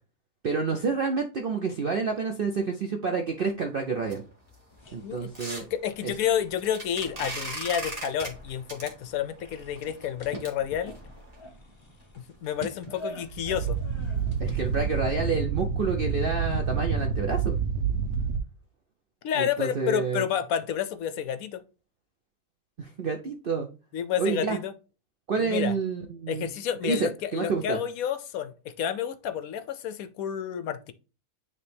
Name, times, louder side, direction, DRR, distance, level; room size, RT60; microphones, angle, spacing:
voice 1, 0.4-4.2 4.9-5.7 6.0-6.1 14.4-17.6 19.4-20.2 22.8-23.7 24.2-24.6 25.3-26.5 26.8-27.8, right 5 dB, 60° right, 0.5 m, -29 dB
sound 1, 4.0-11.4 12.0-12.1 12.4-12.5 12.8-13.0 13.3-13.4 13.8-14.1 14.3-14.4 14.9-15.0, right 2 dB, 25° right, 1.7 m, -40 dB
sound 2, 4.7-15.0, equal, 40° left, 0.4 m, -46 dB
voice 2, 5.7-10.9 12.4-13.8 19.2-21.6 23.9-24.7 25.4-25.7 26.3-30.9, left 9 dB, 70° left, 0.9 m, -30 dB
sound 3, 13.2-18.4, right 6 dB, 80° right, 1.3 m, -28 dB
9.4 x 3.2 x 3.4 m
omnidirectional pair, 1.7 m